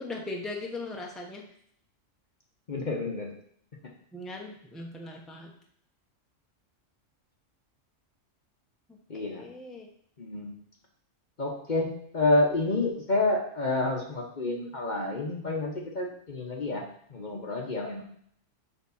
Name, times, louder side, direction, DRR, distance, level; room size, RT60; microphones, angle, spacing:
voice 1, 0.0-1.5 4.1-5.5 9.2-9.9, left 2 dB, ahead, 1 dB, 1.0 m, -39 dB
voice 2, 2.7-3.3 9.1-9.5 10.2-10.5 11.4-16.8 17.1-18.0, left 2 dB, 40° left, 1 dB, 1.2 m, -29 dB
7.2 x 5.2 x 5.6 m, 0.65 s
omnidirectional pair, 1.3 m